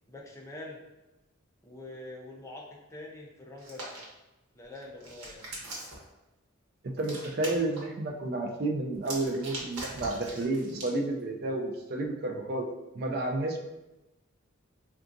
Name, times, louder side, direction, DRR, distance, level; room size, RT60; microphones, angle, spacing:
voice 1, 0.1-0.8 1.6-4.0 4.5-5.5, left 2 dB, 15° left, -2 dB, 0.4 m, -45 dB
Hands, 3.6-4.0 4.7-6.0 7.0-7.8 8.9-10.9, right 2 dB, 85° right, 0.9 m, -41 dB
voice 2, 6.8-12.7 12.9-13.6, right 2 dB, 45° right, 2 dB, 0.4 m, -31 dB
3.7 x 2.3 x 2.5 m, 1.0 s
head